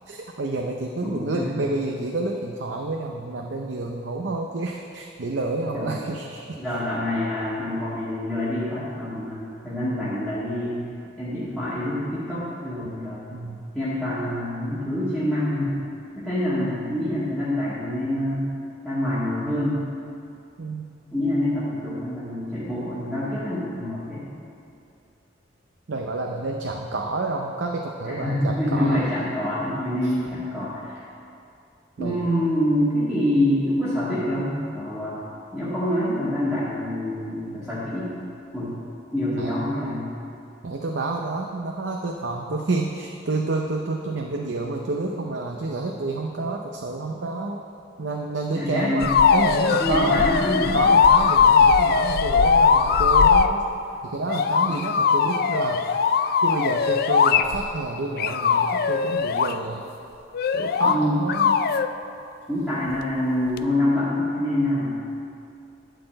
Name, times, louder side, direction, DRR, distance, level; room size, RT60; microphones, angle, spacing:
voice 1, 0.1-6.6 10.6-10.7 13.3-13.6 20.6-20.9 25.9-29.1 30.0-30.2 32.0-32.3 33.1-33.2 39.4-39.5 40.6-47.6 48.0-50.2 50.7-53.6 54.0-59.9 60.5-61.6, right 2 dB, 65° right, 1 dB, 0.6 m, -29 dB
voice 2, 1.0-1.5 5.7-6.0 6.6-10.8 11.2-13.2 13.7-15.8 16.1-18.5 18.8-19.8 21.1-24.2 28.0-31.0 32.0-35.1 35.5-38.2 38.5-38.7 39.1-40.1 48.5-49.1 49.8-50.7 60.8-61.1 62.5-64.9, left 1 dB, 5° left, -14 dB, 2.0 m, -26 dB
sound 1, 49.0-53.5 54.3-57.8 58.2-59.5 60.3-61.0 61.3-61.9 63.6-63.7, left 6 dB, 55° left, 0.3 m, -19 dB
12.5 x 4.3 x 7.8 m, 2.6 s
head